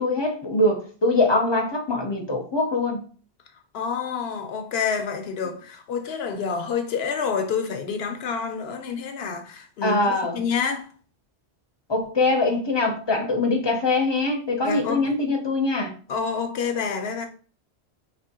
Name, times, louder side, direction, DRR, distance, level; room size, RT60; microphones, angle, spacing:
voice 1, 0.0-3.0 9.8-10.4 11.9-15.9, left 2 dB, 30° left, 0.6 m, -23 dB
voice 2, 3.7-10.9 14.6-15.0 16.1-17.3, left 6 dB, 70° left, 0.8 m, -28 dB
4.2 x 2.9 x 2.8 m
omnidirectional pair, 1.1 m